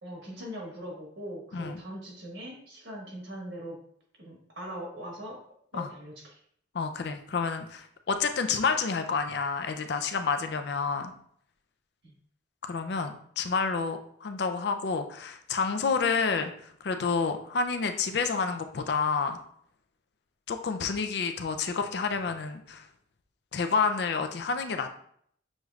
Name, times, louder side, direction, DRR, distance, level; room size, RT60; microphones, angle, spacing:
voice 1, 0.0-3.8 4.2-5.4 5.7-6.4 12.0-12.1, equal, 65° right, -1 dB, 1.5 m, -41 dB
voice 2, 6.7-11.1 12.6-19.4 20.5-22.9 23.5-24.9, left 5 dB, 60° left, 7 dB, 0.4 m, -29 dB
6.3 x 3.1 x 2.4 m, 0.64 s
head